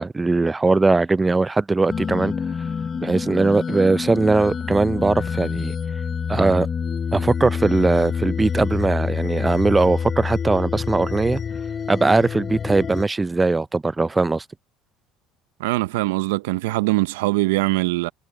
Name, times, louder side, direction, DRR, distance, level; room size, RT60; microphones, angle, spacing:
voice 1, 0.0-2.3 3.0-5.7 6.3-6.7 7.1-11.4 11.9-14.4, right 3 dB, 15° right, 0.4 m, -20 dB
sound 1, 1.9-13.0, left 6 dB, 30° left, 0.5 m, -27 dB
voice 2, 15.6-18.1, right 20 dB, 90° right, 0.6 m, -22 dB
supercardioid pair, 90°, 0 cm